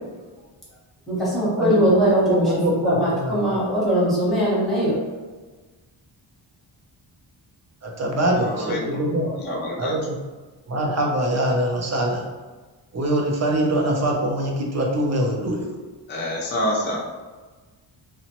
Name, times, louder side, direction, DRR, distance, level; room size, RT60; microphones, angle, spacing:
voice 1, 1.1-5.0, equal, ahead, -8 dB, 0.8 m, -21 dB
voice 2, 1.6-3.6 7.8-9.4 9.8-10.2 10.7-12.2 12.9-15.7, right 1 dB, 35° right, 0 dB, 0.4 m, -23 dB
voice 3, 8.4-9.9 16.1-17.0, left 1 dB, 25° left, -2 dB, 0.4 m, -28 dB
2.9 x 2.0 x 2.8 m, 1.3 s
wide cardioid pair, 170°, 47 cm